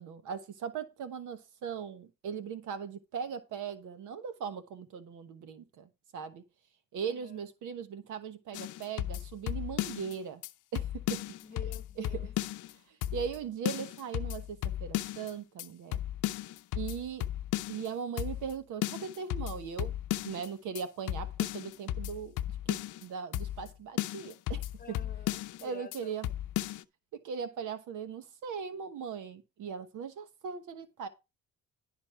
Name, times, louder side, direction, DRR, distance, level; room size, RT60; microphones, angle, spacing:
voice 1, 0.0-6.4 6.9-10.4 10.7-11.2 12.0-12.3 13.1-16.0 16.7-17.3 17.7-19.9 20.2-24.6 24.9-25.0 25.6-26.3 27.1-31.1, right 7 dB, 80° right, 1.2 m, -39 dB
voice 2, 7.0-7.4 11.4-12.3 24.8-26.2, left 5 dB, 30° left, 1.0 m, -49 dB
sound 1, 8.5-10.1 10.4-10.5 10.8-12.7 13.0-13.4 13.7-15.3 15.6-15.7 15.9-17.9 18.2-18.5 18.8-20.5 20.8-20.9 21.1-23.0 23.3-23.7 24.0-25.6 25.9-26.0 26.2-26.8, left 13 dB, 80° left, 0.6 m, -35 dB
11.5 x 4.1 x 5.6 m
cardioid pair, 90°, 30 cm